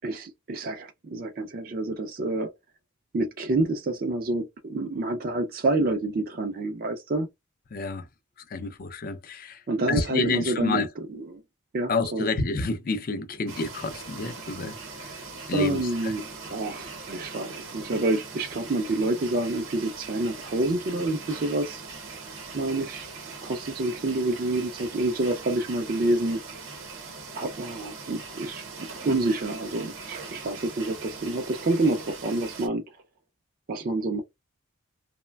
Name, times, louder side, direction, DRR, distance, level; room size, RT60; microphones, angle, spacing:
voice 1, 0.0-2.5 3.1-7.3 9.7-11.4 11.7-12.3 15.5-21.8 22.5-23.1 23.4-26.4 27.3-32.8 33.7-34.2, right 2 dB, 45° right, 0.4 m, -28 dB
voice 2, 7.7-8.1 8.5-9.6 9.9-10.9 11.9-14.7 15.5-16.1, left 3 dB, 40° left, 0.4 m, -28 dB
sound 1, 13.5-32.7, right 4 dB, 65° right, 0.8 m, -41 dB
3.1 x 2.1 x 2.2 m
head